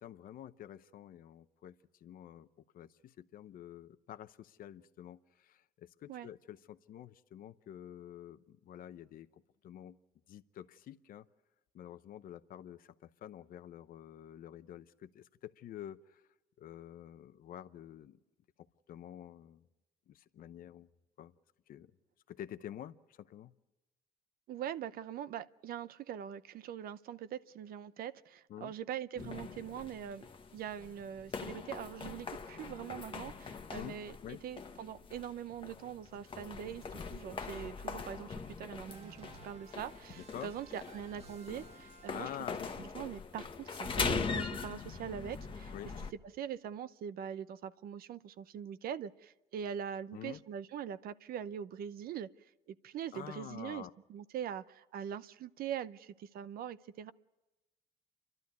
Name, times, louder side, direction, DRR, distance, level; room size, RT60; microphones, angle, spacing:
voice 1, 0.0-2.5 2.7-10.0 10.3-11.3 11.7-16.2 16.6-18.2 18.9-19.6 20.1-20.9 21.2-21.3 21.7-21.9 22.3-23.5 28.5-28.7 33.7-34.0 34.2-34.4 40.2-40.5 42.1-42.8 45.7-45.9 50.1-50.4 53.1-53.9, left 11 dB, 55° left, 11 dB, 0.8 m, -48 dB
voice 2, 24.5-30.3 30.5-42.3 42.8-45.7 46.4-57.1, right 9 dB, 60° right, 14 dB, 0.7 m, -43 dB
sound 1, 29.2-46.1, left 5 dB, 30° left, 1.2 m, -42 dB
sound 2, 38.9-42.8, right 4 dB, 40° right, 1.4 m, -56 dB
29.0 x 12.0 x 9.5 m, 1.1 s
cardioid pair, 110°, 17 cm